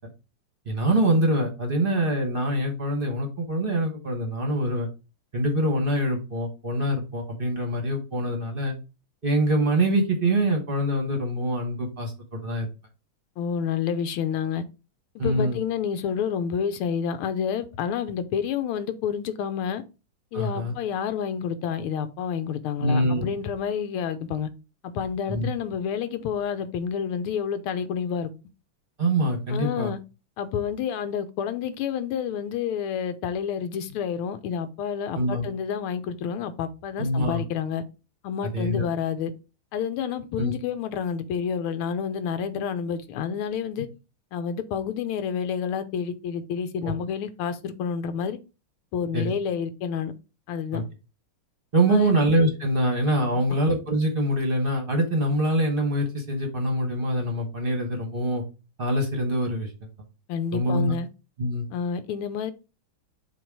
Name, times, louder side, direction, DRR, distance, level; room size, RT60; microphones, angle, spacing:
voice 1, 0.7-4.9 5.3-8.7 9.2-12.7 15.2-15.6 20.3-20.7 22.8-23.2 25.3-25.5 29.0-29.9 35.1-35.4 37.0-37.4 38.5-38.9 40.4-40.5 46.8-46.9 49.1-49.3 50.7-50.8 51.7-58.4 58.8-59.7 60.5-60.9 61.4-61.7, right 1 dB, 35° right, 1.0 m, -24 dB
voice 2, 13.4-14.6 15.1-19.8 20.3-24.5 24.8-28.3 29.5-30.0 30.4-37.8 38.2-39.3 39.7-43.9 44.3-48.4 48.9-50.1 50.5-50.8 51.9-52.1 53.5-53.6 60.3-61.1 61.7-62.5, left 7 dB, 90° left, 1.6 m, -29 dB
7.1 x 2.9 x 4.6 m
omnidirectional pair, 2.4 m